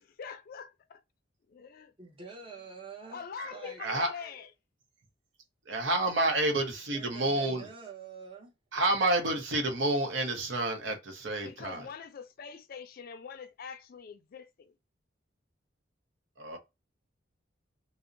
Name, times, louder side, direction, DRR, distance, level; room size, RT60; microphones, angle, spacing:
voice 1, 0.2-1.0 1.5-1.9 2.5-2.7 3.1-4.5 6.2-6.3 11.4-14.7, left 6 dB, 50° left, 0.4 m, -44 dB
voice 2, 2.0-3.2 3.5-4.5 6.9-8.5, right 5 dB, 30° right, 0.8 m, -47 dB
voice 3, 3.8-4.1 5.6-7.7 8.7-11.9 16.4-16.6, right 2 dB, 80° right, 0.7 m, -29 dB
2.6 x 2.0 x 2.5 m
head